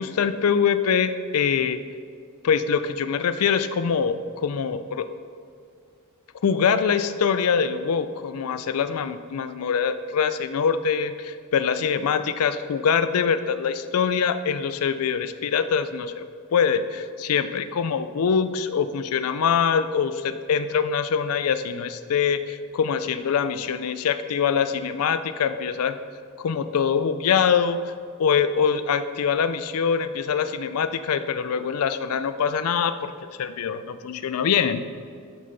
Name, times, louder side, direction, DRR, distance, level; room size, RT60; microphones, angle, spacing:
voice 1, 0.0-1.8 2.4-5.0 6.4-16.2 16.5-26.0 26.4-27.8 28.2-33.1 33.4-34.8, left 6 dB, 75° left, 11 dB, 0.4 m, -24 dB
12.0 x 6.4 x 4.0 m, 2.2 s
head